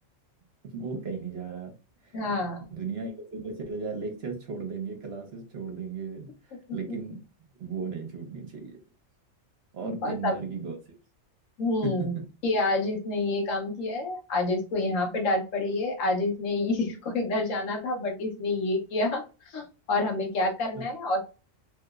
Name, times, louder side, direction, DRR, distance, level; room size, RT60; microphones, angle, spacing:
voice 1, 0.7-1.7 2.0-2.1 2.7-6.3 6.7-7.2 7.6-8.8 9.7-10.8 11.8-12.2 16.8-16.9 20.7-20.8, right 5 dB, 55° right, 3 dB, 1.0 m, -35 dB
voice 2, 2.1-2.6 6.7-6.8 9.8-10.3 11.6-12.1 12.4-19.2 19.5-21.2, left 2 dB, 80° left, 2 dB, 1.3 m, -28 dB
3.1 x 2.8 x 2.4 m, 0.32 s
omnidirectional pair, 1.3 m